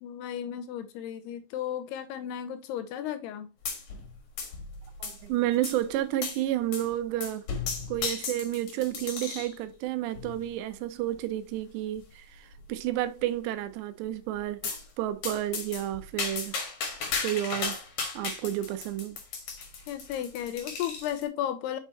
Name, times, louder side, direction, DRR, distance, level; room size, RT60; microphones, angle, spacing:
voice 1, 0.0-3.5 19.9-21.8, left 10 dB, 80° left, 2.6 m, -34 dB
sound 1, 3.7-4.1 4.4-5.3 5.6-5.8 6.2-6.4 6.7-6.9 7.2-9.6 10.2-10.5 11.2-11.3 11.6-11.7 12.0-12.1 12.5-13.0 14.6-14.8 15.2-21.2, left 5 dB, 55° left, 2.4 m, -35 dB
voice 2, 5.0-7.4 7.9-16.5 17.2-17.8 18.1-19.2, right 13 dB, 85° right, 2.8 m, -31 dB
6.8 x 5.5 x 2.9 m
omnidirectional pair, 4.9 m